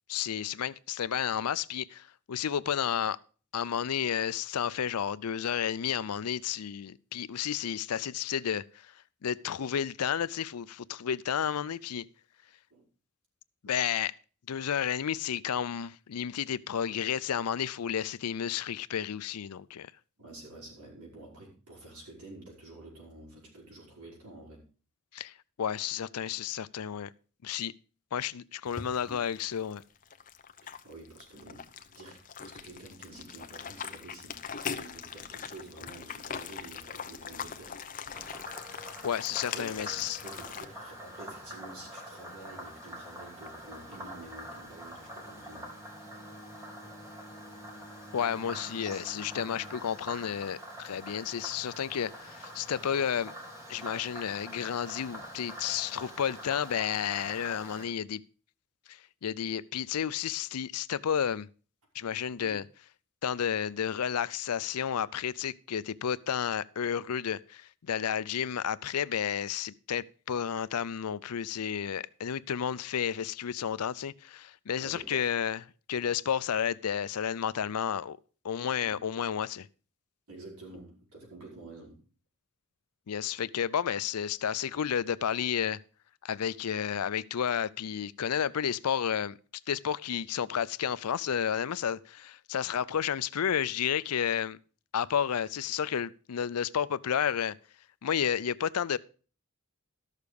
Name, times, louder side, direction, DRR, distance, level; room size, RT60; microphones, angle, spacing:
voice 1, 0.1-3.2 3.5-8.9 9.2-12.0 13.6-14.1 14.5-19.9 25.1-27.1 27.4-27.7 28.1-29.8 39.0-40.2 48.1-53.3 53.7-58.2 58.9-61.5 61.9-62.6 63.2-75.6 75.9-78.2 78.4-79.7 83.1-85.8 86.2-89.4 89.7-94.6 94.9-97.5 98.0-99.0, left 8 dB, 90° left, 0.5 m, -31 dB
voice 2, 20.2-24.6 30.8-37.8 39.5-45.8 62.4-62.6 74.8-75.3 78.8-79.0 80.3-82.0, right 2 dB, 85° right, 5.4 m, -49 dB
sound 1, 28.7-40.7, left 6 dB, 40° left, 0.7 m, -41 dB
Frog, 38.1-57.8, equal, 15° right, 2.3 m, -45 dB
Bowed string instrument, 45.0-49.9, equal, 5° left, 1.6 m, -52 dB
13.0 x 6.6 x 5.2 m
head